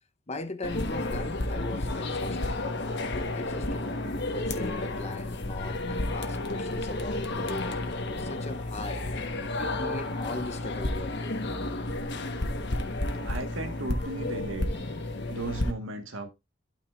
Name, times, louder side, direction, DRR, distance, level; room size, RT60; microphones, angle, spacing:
voice 1, 0.3-2.6 3.3-3.9 4.3-9.1 9.6-11.4, left 2 dB, 35° left, 0.9 m, -39 dB
sound 1, 0.6-15.7, left 2 dB, 60° left, 1.3 m, -31 dB
voice 2, 13.2-14.7 15.3-16.3, right 2 dB, 85° right, 1.5 m, -35 dB
12.0 x 5.5 x 2.5 m
head